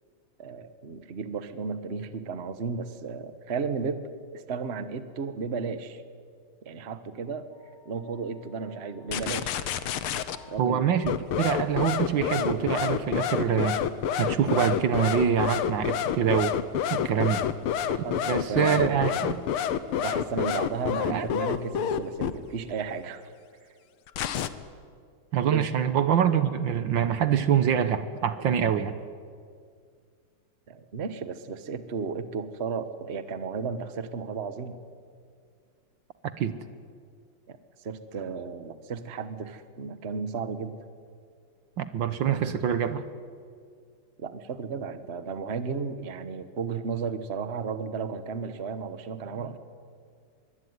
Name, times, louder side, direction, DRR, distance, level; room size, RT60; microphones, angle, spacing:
voice 1, 0.4-4.1 4.3-6.0 6.6-7.5 7.8-9.6 10.5-10.9 17.9-19.4 20.0-23.2 25.4-25.7 30.7-34.8 37.5-37.6 37.8-40.8 44.2-49.6, right 5 dB, 35° right, 11 dB, 1.3 m, -34 dB
sound 1, 9.1-10.4 11.0-22.3 24.1-24.5, left 9 dB, 85° left, 1.9 m, -28 dB
voice 2, 10.6-13.8 14.2-16.6 16.9-17.5 18.3-19.4 21.1-21.5 25.3-29.0 36.2-36.5 41.8-43.0, right 8 dB, 65° right, 11 dB, 1.7 m, -25 dB
24.5 x 23.0 x 9.6 m, 2.1 s
omnidirectional pair, 2.3 m